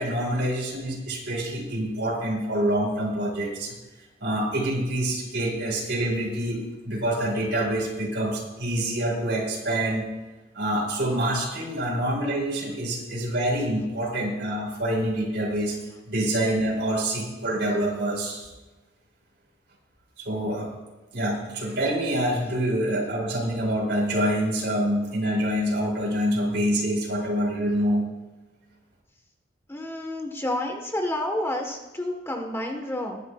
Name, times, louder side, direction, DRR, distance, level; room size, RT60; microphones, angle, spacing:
voice 1, 0.0-3.8 4.2-10.0 10.5-15.8 16.1-18.5 20.2-20.7 21.1-28.1, right 1 dB, 75° right, -2 dB, 4.6 m, -26 dB
voice 2, 29.7-33.2, left 1 dB, 15° left, 3 dB, 1.3 m, -30 dB
21.0 x 11.0 x 2.4 m, 1.1 s
head